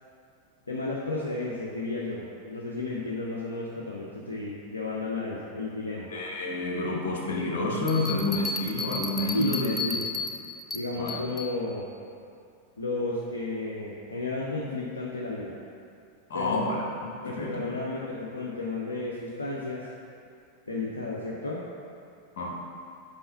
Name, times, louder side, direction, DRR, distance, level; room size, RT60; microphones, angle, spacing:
voice 1, 0.7-6.1 9.3-10.0 10.7-11.9 12.8-15.5 16.3-16.6 17.2-19.9 20.7-21.6, left 2 dB, 80° left, -4 dB, 0.6 m, -33 dB
voice 2, 6.1-9.8 11.0-11.2 16.3-16.8 17.3-17.6 22.4-22.5, left 2 dB, 60° left, 0 dB, 1.1 m, -29 dB
sound 1, 7.9-11.5, left 4 dB, 10° left, 0.5 m, -34 dB
5.5 x 4.3 x 5.5 m, 2.5 s
figure-of-eight pair, 90°, 0 cm